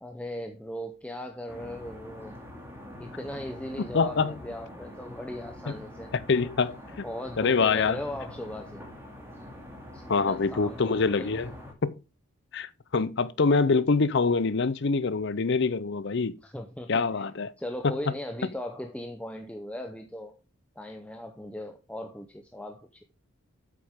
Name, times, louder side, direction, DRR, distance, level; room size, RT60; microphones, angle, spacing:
voice 1, 0.0-2.4 3.0-6.1 7.0-8.8 9.9-11.4 16.4-17.2 17.6-20.4 20.8-23.0, left 1 dB, 5° left, 0.7 m, -38 dB
sound 1, 1.5-11.7, left 1 dB, 10° right, 2.4 m, -45 dB
voice 2, 3.9-4.3 6.1-7.0 7.4-8.0 10.1-11.5 11.8-12.0 12.5-16.4 16.9-17.5 17.8-17.9, left 4 dB, 55° left, 0.6 m, -25 dB
8.5 x 7.8 x 3.6 m
head